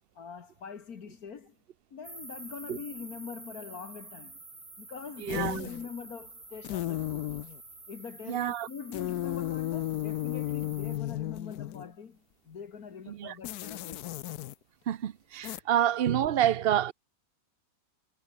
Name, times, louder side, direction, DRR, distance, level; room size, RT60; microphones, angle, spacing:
voice 1, 0.2-1.6 1.9-4.4 4.8-7.4 7.9-14.2, left 6 dB, 70° left, 2.1 m, -43 dB
sound 1, 2.0-11.0, right 2 dB, 80° right, 6.7 m, -49 dB
voice 2, 5.2-5.7 8.3-8.7 13.1-13.4 14.9-16.9, right 11 dB, 50° right, 0.7 m, -28 dB
sound 2, 5.3-5.9 6.6-7.6 8.9-11.9 13.4-14.5 15.4-15.6, left 15 dB, 85° left, 1.2 m, -34 dB
omnidirectional pair, 1.6 m